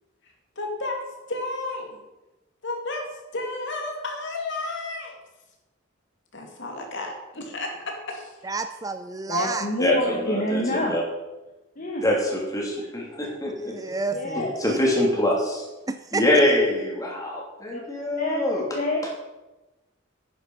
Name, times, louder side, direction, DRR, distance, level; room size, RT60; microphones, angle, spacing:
voice 1, 0.2-1.0 1.3-2.0 2.6-3.1 3.3-5.2 6.3-8.5, left 2 dB, 65° left, 2 dB, 2.6 m, -32 dB
voice 2, 8.4-9.7 13.6-14.8 15.9-16.2, right 3 dB, 20° right, 8 dB, 0.5 m, -30 dB
voice 3, 9.3-10.9 11.8-12.0 14.1-14.6 17.7-17.8 18.2-18.4 18.7-19.1, left 1 dB, 40° left, 0 dB, 1.3 m, -27 dB
voice 4, 9.8-11.0 12.0-13.8 14.3-15.7 16.1-18.6, left 1 dB, 20° left, -2 dB, 3.1 m, -24 dB
10.5 x 9.4 x 5.6 m, 1.1 s
head